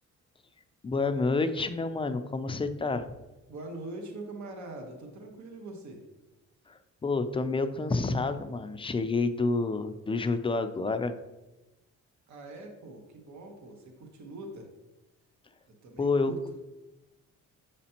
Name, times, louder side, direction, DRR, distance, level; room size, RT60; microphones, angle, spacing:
voice 1, 0.8-3.1 6.7-11.1 16.0-16.3, left 3 dB, 20° left, 9 dB, 0.4 m, -29 dB
voice 2, 3.5-6.0 12.3-14.7 15.8-16.4, right 2 dB, 70° right, 3 dB, 1.2 m, -43 dB
6.6 x 5.1 x 2.9 m, 1.0 s
cardioid pair, 90°, 30 cm